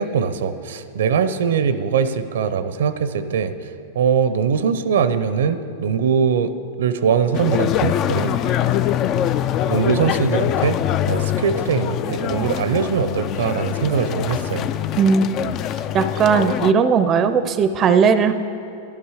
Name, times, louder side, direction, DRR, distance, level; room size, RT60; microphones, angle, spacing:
voice 1, 0.0-8.4 9.7-14.7, right 6 dB, 85° right, 12 dB, 0.6 m, -21 dB
sound 1, 7.3-16.7, left 11 dB, 35° left, 0.3 m, -23 dB
voice 2, 15.9-18.3, right 6 dB, 25° right, 11 dB, 0.5 m, -17 dB
11.0 x 11.0 x 4.9 m, 2.7 s
supercardioid pair, 140°, 0 cm